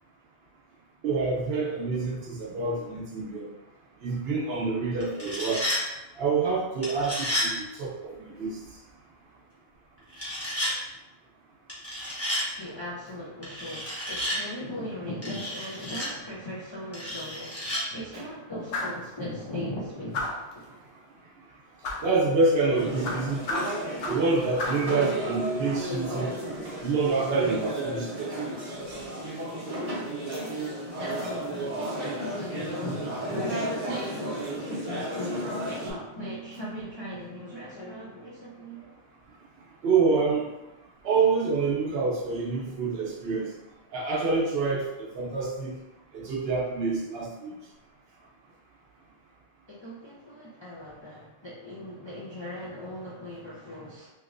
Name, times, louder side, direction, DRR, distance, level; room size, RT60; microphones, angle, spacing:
voice 1, 1.0-3.5 4.0-5.7 6.2-8.6 22.0-23.7 24.1-26.3 26.8-28.4 39.8-40.5 41.0-43.5 43.9-45.8 46.1-47.5, right 4 dB, 60° right, -2 dB, 0.8 m, -27 dB
sound 1, 5.0-5.8 6.8-7.5 10.1-10.7 11.7-12.5 13.4-14.4 15.2-16.1 16.9-17.8, equal, 15° left, 0.9 m, -31 dB
voice 2, 12.6-20.6 31.0-39.0 49.7-54.1, left 1 dB, 40° left, -8 dB, 0.4 m, -38 dB
sound 2, 18.7-19.0 20.1-20.5 21.8-22.1 23.0-24.3 24.6-24.9, left 2 dB, 75° left, 0.9 m, -32 dB
sound 3, 22.7-35.9, right 1 dB, 35° right, 0.7 m, -33 dB
3.0 x 2.9 x 2.5 m, 0.97 s
omnidirectional pair, 1.2 m